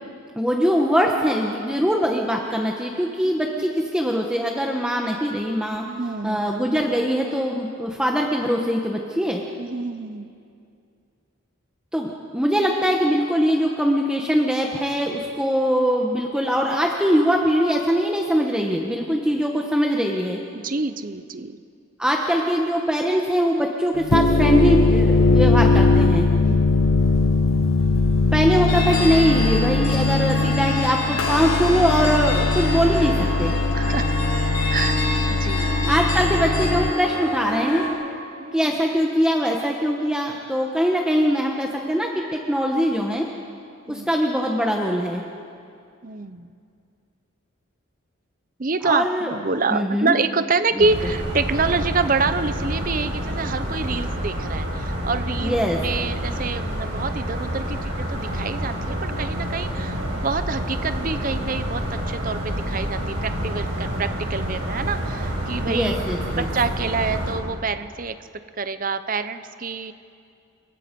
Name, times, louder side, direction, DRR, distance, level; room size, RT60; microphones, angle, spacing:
voice 1, 0.4-5.8 6.2-9.4 11.9-20.4 22.0-26.3 28.3-33.5 35.9-37.9 38.5-43.3 43.9-45.2 48.8-49.3 49.7-50.2 50.7-50.8 55.4-55.8 65.7-66.5, equal, 5° right, 0 dB, 1.2 m, -22 dB
voice 2, 3.2-3.7 5.8-6.5 9.6-10.3 20.5-21.6 26.4-26.7 33.7-34.1 34.7-36.0 38.4-38.7 43.9-44.1 46.0-46.5 48.6-66.0 66.3-68.1 68.6-69.9, right 4 dB, 40° right, 11 dB, 0.7 m, -27 dB
sound 1, 24.0-36.9, left 3 dB, 70° left, 0.7 m, -20 dB
sound 2, 28.7-37.9, left 1 dB, 40° left, 6.9 m, -28 dB
sound 3, 50.8-67.3, equal, 60° right, 6.7 m, -28 dB
28.0 x 22.5 x 5.3 m, 2.4 s
head